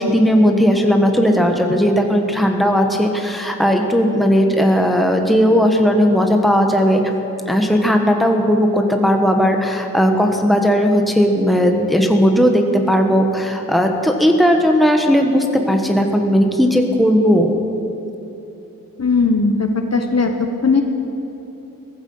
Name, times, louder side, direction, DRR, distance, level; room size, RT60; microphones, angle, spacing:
voice 1, 0.0-7.0 7.4-17.5, equal, ahead, 3 dB, 1.3 m, -16 dB
voice 2, 19.0-20.8, left 4 dB, 50° left, 5 dB, 1.1 m, -18 dB
15.5 x 14.5 x 5.6 m, 3.0 s
wide cardioid pair, 75°, 34 cm